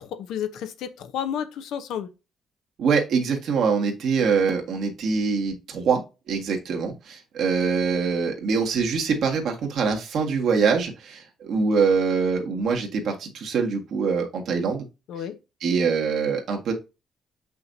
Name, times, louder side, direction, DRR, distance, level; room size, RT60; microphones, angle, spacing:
voice 1, 0.0-2.1 15.1-15.4, left 9 dB, 85° left, 0.9 m, -31 dB
voice 2, 2.8-6.0 6.3-14.9 15.6-16.7, right 5 dB, 70° right, 1.7 m, -24 dB
6.5 x 5.6 x 2.7 m
cardioid pair, 90°, 0 cm